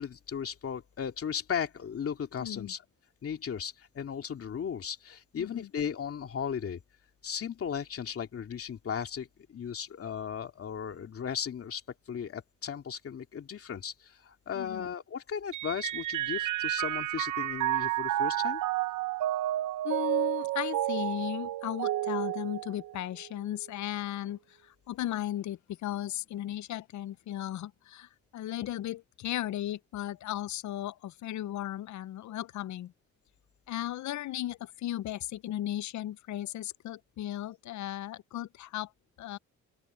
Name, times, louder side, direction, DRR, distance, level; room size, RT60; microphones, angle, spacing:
voice 1, 0.0-2.8 3.2-6.8 7.2-11.8 12.1-18.6, left 7 dB, 50° left, 2.6 m, -36 dB
voice 2, 2.4-2.7 5.4-5.7 14.5-14.9 19.8-32.9 33.7-38.9 39.2-39.4, left 13 dB, 70° left, 0.7 m, -36 dB
Mallet percussion, 15.5-23.3, right 14 dB, 80° right, 0.8 m, -31 dB
open air
cardioid pair, 90°, 30 cm